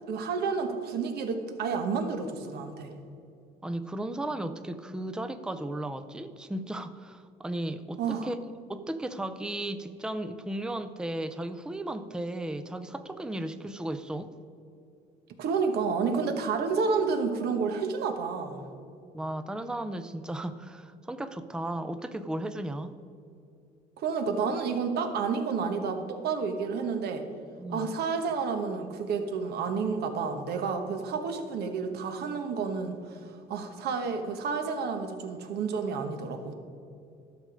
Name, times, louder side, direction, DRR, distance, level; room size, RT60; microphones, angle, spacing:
voice 1, 0.1-2.9 8.0-8.3 15.4-18.7 24.0-27.2 27.7-36.5, right 5 dB, 70° right, 6 dB, 1.2 m, -30 dB
voice 2, 3.6-8.4 8.7-14.3 19.1-23.0 27.6-28.0, right 1 dB, 5° right, 10 dB, 0.5 m, -35 dB
12.5 x 6.4 x 5.0 m, 2.6 s
cardioid pair, 110°, 17 cm